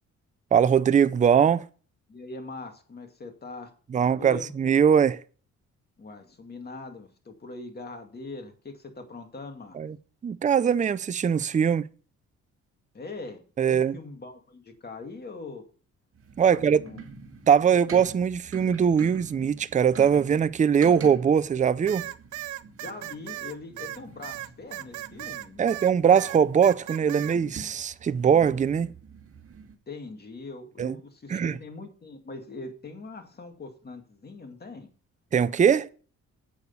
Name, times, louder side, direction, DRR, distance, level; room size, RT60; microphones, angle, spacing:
voice 1, 0.5-1.6 3.9-5.2 9.8-10.0 10.2-11.9 13.6-14.0 16.4-16.8 17.5-22.1 25.6-28.9 30.8-30.9 31.3-31.6 35.3-35.9, right 7 dB, 25° right, 0.5 m, -21 dB
voice 2, 2.1-4.5 6.0-9.8 12.9-13.4 13.7-15.7 16.5-17.0 22.8-25.8 29.9-34.9, left 3 dB, 30° left, 2.3 m, -42 dB
sound 1, 16.1-29.8, right 5 dB, 45° right, 2.0 m, -46 dB
sound 2, 21.9-25.9 26.2-27.4, right 14 dB, 85° right, 0.7 m, -37 dB
8.5 x 6.3 x 5.4 m
cardioid pair, 90°, 30 cm